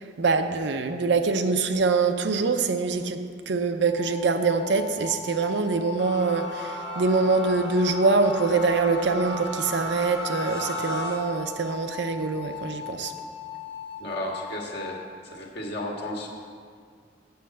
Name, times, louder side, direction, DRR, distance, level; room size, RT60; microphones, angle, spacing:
voice 1, 0.0-3.2 3.5-13.1, right 4 dB, 70° right, 8 dB, 0.6 m, -24 dB
sound 1, 3.9-15.1, left 6 dB, 30° left, 0.7 m, -39 dB
sound 2, 6.0-11.2, left 1 dB, 85° left, 1.6 m, -34 dB
voice 2, 14.0-15.0 15.3-16.3, left 1 dB, 60° left, -2 dB, 1.6 m, -33 dB
7.5 x 5.6 x 7.6 m, 2.1 s
head